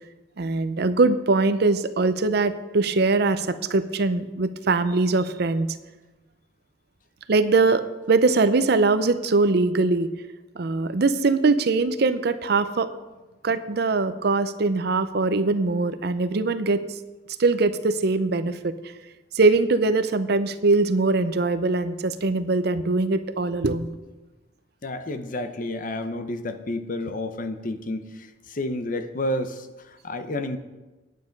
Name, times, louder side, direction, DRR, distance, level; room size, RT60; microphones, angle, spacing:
voice 1, 0.4-5.7 7.3-10.1 10.6-12.9 13.4-16.8 17.4-18.7 19.3-23.9, right 3 dB, 60° right, 12 dB, 0.6 m, -22 dB
voice 2, 24.8-30.6, left 1 dB, 45° left, 9 dB, 0.7 m, -30 dB
9.5 x 9.2 x 5.2 m, 1.2 s
head